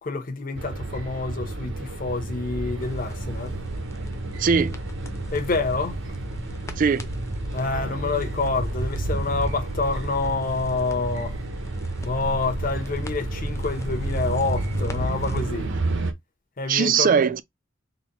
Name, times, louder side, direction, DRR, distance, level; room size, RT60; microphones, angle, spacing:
voice 1, 0.0-3.5 5.3-6.0 7.5-11.4 12.0-15.7 16.6-17.2, left 3 dB, 45° left, 0.8 m, -27 dB
sound 1, 0.6-16.1, right 2 dB, 65° right, 0.7 m, -31 dB
sound 2, 2.8-15.4, left 1 dB, 15° left, 0.5 m, -39 dB
voice 2, 4.4-4.8 6.8-7.1 16.7-17.4, right 6 dB, 45° right, 0.3 m, -20 dB
4.0 x 2.1 x 4.0 m
head